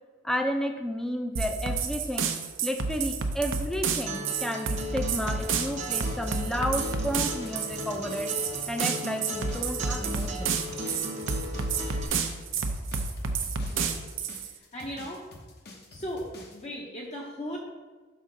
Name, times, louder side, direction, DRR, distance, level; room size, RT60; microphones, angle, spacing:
voice 1, 0.2-2.3 2.6-8.3 8.7-10.6, equal, ahead, 5 dB, 0.5 m, -32 dB
sound 1, 1.4-14.5, right 5 dB, 75° right, 0.6 m, -30 dB
Acoustic guitar, 4.1-12.0, equal, 40° right, 0.9 m, -37 dB
sound 2, 5.7-16.6, left 2 dB, 55° left, 1.1 m, -48 dB
voice 2, 13.7-15.3 15.9-17.6, equal, 35° left, -2 dB, 0.9 m, -38 dB
6.4 x 5.5 x 3.9 m, 1.4 s
head